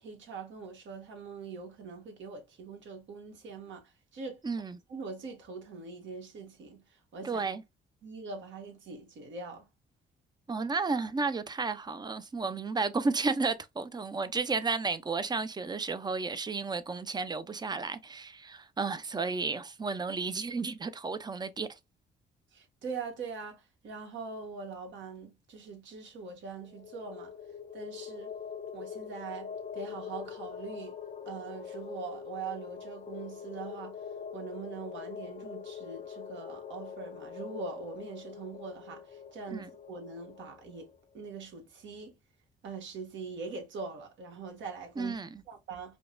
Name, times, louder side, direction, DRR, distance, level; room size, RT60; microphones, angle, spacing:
voice 1, 0.0-4.4 4.9-7.4 8.0-9.7 22.5-27.3 27.7-28.3 28.7-31.0 31.2-34.0 34.3-40.9 41.1-42.2 42.6-45.2 45.5-46.0, right 4 dB, 70° right, 1.3 m, -42 dB
voice 2, 4.4-4.8 7.2-7.6 10.5-21.8 39.5-39.7 45.0-45.4, right 4 dB, 20° right, 0.4 m, -32 dB
sound 1, 26.6-41.0, left 7 dB, 40° left, 0.6 m, -44 dB
5.0 x 2.1 x 2.5 m
cardioid pair, 90°, 20 cm